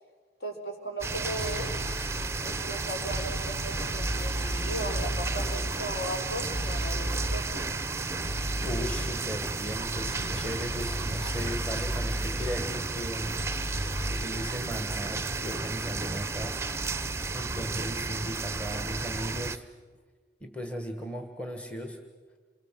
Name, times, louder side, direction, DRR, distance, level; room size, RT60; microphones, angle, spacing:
voice 1, 0.4-1.7 2.4-7.6, right 1 dB, 60° left, 2 dB, 4.8 m, -37 dB
sound 1, 1.0-19.6, right 3 dB, 15° right, 0.6 m, -33 dB
sound 2, 1.4-2.3 3.1-5.7 6.5-7.4 8.2-9.2 10.0-12.6 13.4-14.2, equal, 25° left, 0.7 m, -34 dB
voice 2, 8.6-13.3 14.0-17.0 17.3-19.7 20.4-22.0, equal, 5° left, 5 dB, 1.4 m, -37 dB
28.0 x 21.5 x 7.4 m, 1.5 s
head